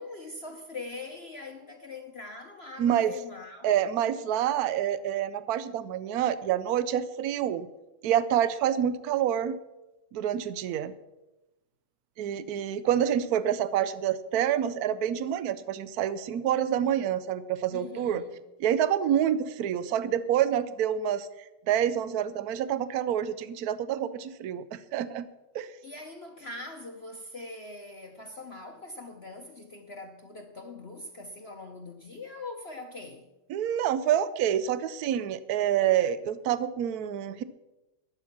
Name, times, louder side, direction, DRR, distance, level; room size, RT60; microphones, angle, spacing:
voice 1, 0.0-3.8 17.7-18.3 25.8-33.3, left 3 dB, 45° left, 0.8 m, -42 dB
voice 2, 2.8-3.1 3.6-7.7 8.0-9.6 10.1-10.9 12.2-18.2 18.6-21.3 21.7-25.3 25.5-25.7 33.5-37.4, right 10 dB, 80° right, 0.8 m, -27 dB
14.5 x 10.5 x 6.0 m
omnidirectional pair, 2.3 m